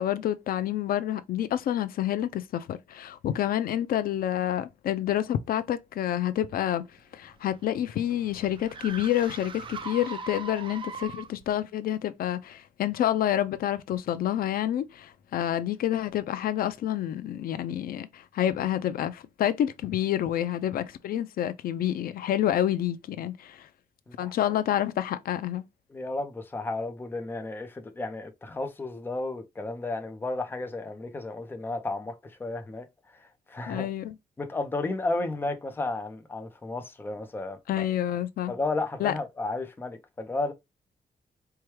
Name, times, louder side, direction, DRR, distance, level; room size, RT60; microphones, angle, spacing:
voice 1, 0.0-6.8 7.1-23.7 24.2-25.6 33.7-34.1 37.7-38.5 39.0-39.1, left 11 dB, 80° left, 0.4 m, -28 dB
sound 1, 7.0-11.5, right 5 dB, 35° right, 0.4 m, -41 dB
voice 2, 24.1-24.5 25.9-32.9 33.1-33.9 34.4-37.8 38.5-40.5, left 2 dB, 15° left, 0.5 m, -33 dB
4.5 x 2.2 x 3.1 m
wide cardioid pair, 180°, 15 cm